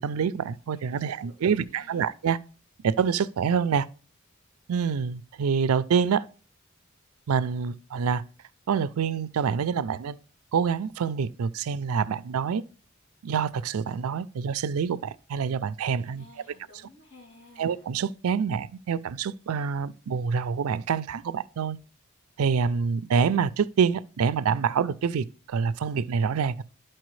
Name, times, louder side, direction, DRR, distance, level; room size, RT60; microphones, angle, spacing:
voice 1, 0.0-2.4 2.8-3.9 4.7-6.2 7.3-8.2 8.7-10.2 10.5-12.6 13.2-16.3 17.6-21.8 22.4-26.6, right 6 dB, 90° right, 0.4 m, -26 dB
voice 2, 0.7-2.0 15.8-17.8, left 2 dB, 70° left, 3.3 m, -55 dB
12.5 x 4.4 x 3.1 m
head